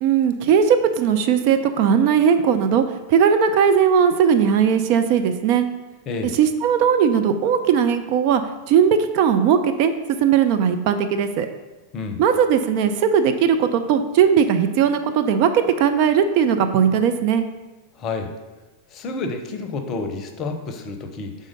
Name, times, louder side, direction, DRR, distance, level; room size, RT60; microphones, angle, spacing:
voice 1, 0.0-2.8 3.1-5.7 6.3-8.4 8.7-9.9 10.2-11.5 12.2-17.4, right 7 dB, 45° right, 8 dB, 0.4 m, -18 dB
voice 2, 18.0-18.3 18.9-21.4, left 3 dB, 35° left, 6 dB, 0.7 m, -29 dB
4.9 x 3.7 x 5.3 m, 1.2 s
figure-of-eight pair, 90°, 0 cm